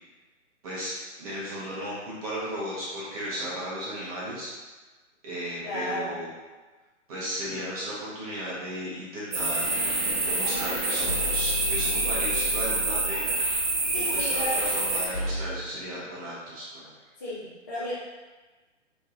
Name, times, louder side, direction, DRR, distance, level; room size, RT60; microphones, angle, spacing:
voice 1, 0.6-4.5 5.2-6.3 7.1-9.7 10.3-13.4 14.1-16.9, equal, 30° right, -7 dB, 0.9 m, -35 dB
voice 2, 5.6-6.1 13.9-14.6 17.2-17.9, left 1 dB, 15° left, -9 dB, 0.4 m, -33 dB
sound 1, 9.3-15.7, left 2 dB, 70° left, 1.3 m, -35 dB
sound 2, 9.3-15.1, right 2 dB, 65° right, 1.1 m, -27 dB
3.6 x 3.0 x 2.5 m, 1.3 s
figure-of-eight pair, 135°, 38 cm